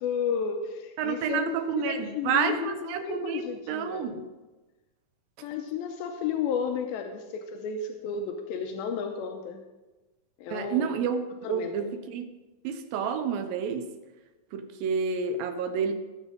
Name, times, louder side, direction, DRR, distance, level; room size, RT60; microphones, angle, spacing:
voice 1, 0.0-4.1 5.4-9.6 10.4-10.9 11.4-11.9, left 6 dB, 90° left, 4 dB, 2.6 m, -32 dB
voice 2, 1.0-4.3 10.5-11.2 11.5-12.3 12.6-13.9 14.5-15.9, right 6 dB, 80° right, 8 dB, 2.6 m, -29 dB
18.5 x 7.3 x 3.8 m, 1.2 s
omnidirectional pair, 4.2 m